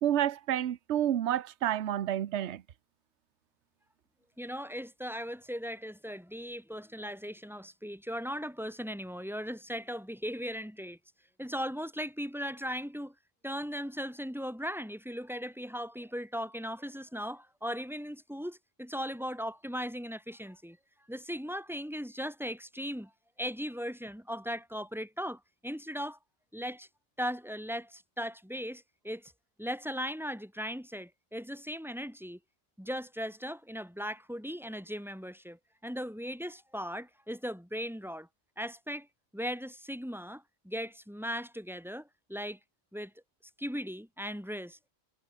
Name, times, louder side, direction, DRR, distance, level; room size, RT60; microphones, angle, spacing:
voice 1, 0.0-2.6, right 11 dB, 70° right, 1.1 m, -29 dB
voice 2, 4.4-11.0 11.4-13.1 13.4-20.8 21.1-23.1 23.4-26.2 26.5-26.9 27.2-29.3 29.6-32.4 32.8-38.3 38.6-39.1 39.3-42.6 42.9-43.1 43.6-44.9, equal, ahead, 6.0 m, -38 dB
omnidirectional pair, 1.2 m